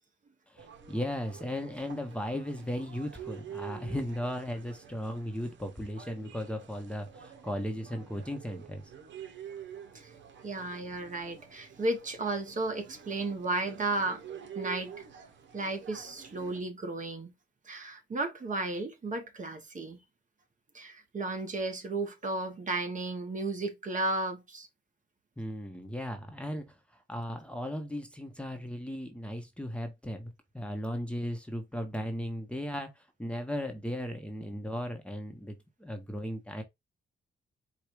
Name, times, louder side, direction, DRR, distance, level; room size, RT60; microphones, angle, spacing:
voice 1, 0.5-8.8 25.4-26.7 27.1-36.6, equal, 5° left, 0.9 m, -36 dB
sound 1, 0.6-16.6, right 8 dB, 70° right, 1.0 m, -48 dB
voice 2, 10.4-14.2 14.5-15.0 15.5-17.3 17.7-20.0 20.7-24.7, right 2 dB, 40° right, 1.2 m, -34 dB
4.8 x 2.3 x 4.5 m
cardioid pair, 100°, 20 cm